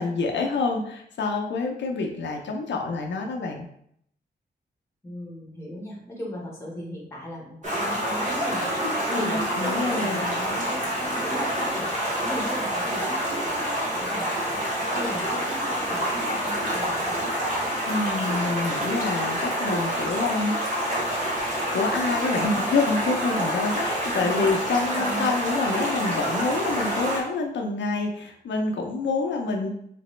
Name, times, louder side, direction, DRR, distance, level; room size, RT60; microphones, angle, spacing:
voice 1, 0.0-3.7 9.1-10.3 17.9-21.2 21.7-29.7, left 3 dB, 85° left, 2 dB, 0.5 m, -27 dB
voice 2, 5.0-8.8 9.1-14.6 14.9-17.2 24.0-24.3 24.9-25.4 29.6-29.7, equal, 15° left, -3 dB, 1.0 m, -37 dB
Stream, 7.6-27.2, equal, 40° right, 1.0 m, -27 dB
3.3 x 2.9 x 3.1 m, 0.72 s
wide cardioid pair, 160°, 18 cm